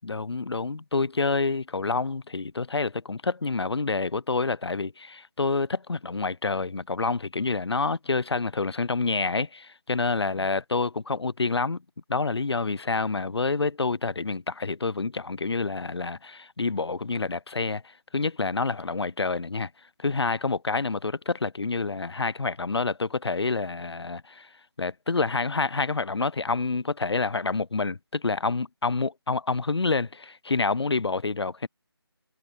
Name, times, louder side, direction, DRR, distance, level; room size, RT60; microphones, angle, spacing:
voice 1, 0.0-11.8 12.1-17.8 18.1-19.7 20.0-24.5 24.8-31.7, left 3 dB, 80° left, 0.7 m, -28 dB
figure-of-eight pair, 165°, 13 cm